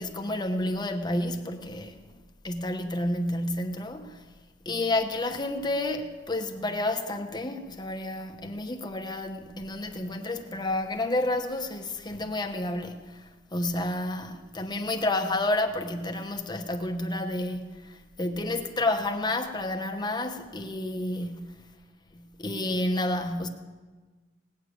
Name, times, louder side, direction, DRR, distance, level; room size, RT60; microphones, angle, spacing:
voice 1, 0.0-2.0 2.4-4.2 4.6-21.6 22.1-23.5, left 1 dB, 25° left, 1.1 m, -30 dB
19.0 x 7.2 x 8.6 m
head